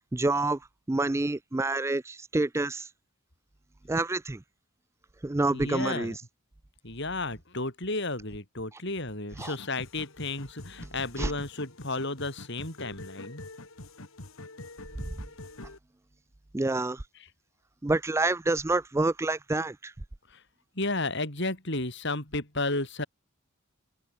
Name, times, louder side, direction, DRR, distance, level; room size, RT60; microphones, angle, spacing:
voice 1, 0.1-0.6 0.9-2.9 3.9-4.4 5.2-6.2 9.4-9.5 11.2-11.3 16.5-17.0 17.8-19.9, right 2 dB, 15° right, 0.4 m, -27 dB
voice 2, 5.5-6.2 6.8-13.4 20.3-20.4 20.7-23.0, left 2 dB, 55° left, 6.2 m, -33 dB
sound 1, 9.4-15.8, left 2 dB, 75° left, 2.4 m, -46 dB
head